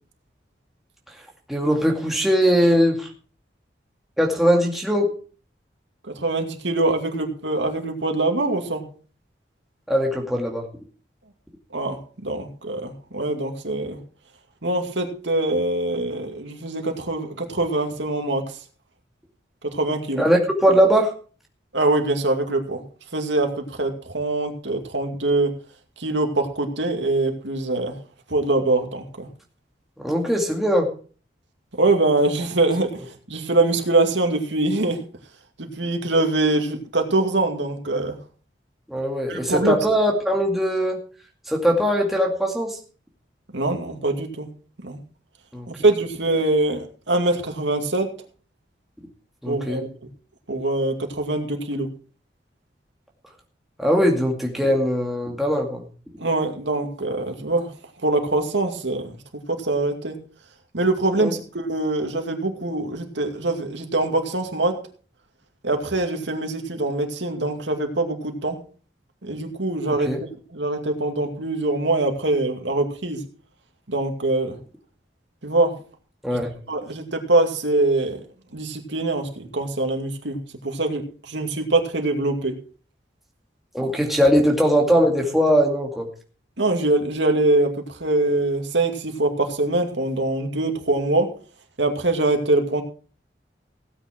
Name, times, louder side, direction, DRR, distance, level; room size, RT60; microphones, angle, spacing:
voice 1, 1.5-3.1 4.2-5.1 9.9-10.6 20.2-21.1 30.0-30.9 38.9-41.0 41.5-42.8 45.5-45.7 49.4-49.8 53.8-55.9 61.2-61.3 70.0-70.2 76.2-76.5 83.7-86.1, equal, ahead, -1 dB, 2.2 m, -20 dB
voice 2, 6.2-8.8 11.7-14.0 14.6-18.4 19.7-20.2 21.7-22.8 23.1-25.6 26.0-28.0 28.3-29.3 31.8-33.0 33.3-35.0 35.6-38.1 39.3-39.8 43.5-44.5 44.8-45.0 45.7-48.1 49.5-49.9 50.5-51.9 56.2-57.7 58.0-59.1 59.5-60.2 60.7-64.8 65.6-68.6 69.2-70.1 70.5-73.2 73.9-74.6 75.4-75.7 76.7-78.2 78.5-80.4 80.6-82.6 86.6-91.3 91.8-92.8, right 2 dB, 80° right, 4 dB, 2.4 m, -23 dB
16.5 x 9.0 x 4.5 m, 0.39 s
head